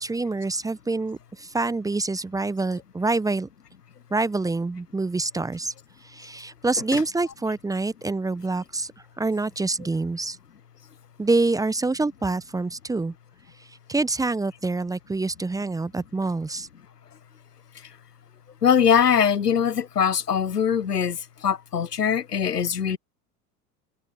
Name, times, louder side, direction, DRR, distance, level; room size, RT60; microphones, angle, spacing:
voice 1, 0.0-3.5 4.1-5.7 6.0-8.9 9.2-10.4 11.2-13.1 13.6-16.7, right 3 dB, 5° right, 1.0 m, -26 dB
voice 2, 18.6-23.0, left 7 dB, 80° left, 1.2 m, -22 dB
open air
figure-of-eight pair, 85°, 47 cm